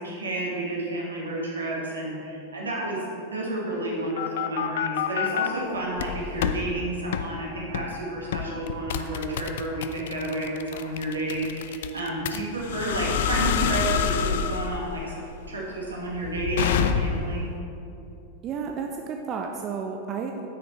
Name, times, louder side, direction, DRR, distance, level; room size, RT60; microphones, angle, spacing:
voice 1, 0.0-15.2 15.5-17.4, right 1 dB, 75° right, -4 dB, 1.7 m, -31 dB
sound 1, 3.7-5.5 6.0-6.6 7.1-7.3 7.7-8.0 8.3-17.4, left 8 dB, 55° left, 0.4 m, -27 dB
voice 2, 18.4-20.5, right 5 dB, 30° right, 3 dB, 0.5 m, -32 dB
9.1 x 5.9 x 3.2 m, 2.8 s
figure-of-eight pair, 90°, 0 cm